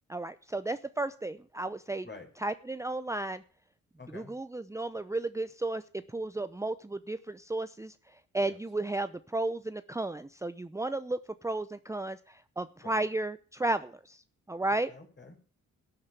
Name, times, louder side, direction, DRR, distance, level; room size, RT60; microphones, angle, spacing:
voice 1, 0.1-2.1 2.4-3.4 4.1-14.2 14.5-14.9, right 2 dB, 10° right, 12 dB, 0.6 m, -33 dB
voice 2, 4.0-4.3 8.4-8.6 12.8-13.0 14.9-15.6, left 3 dB, 35° left, 4 dB, 5.0 m, -49 dB
12.0 x 8.7 x 6.9 m, 0.42 s
cardioid pair, 75°, 30 cm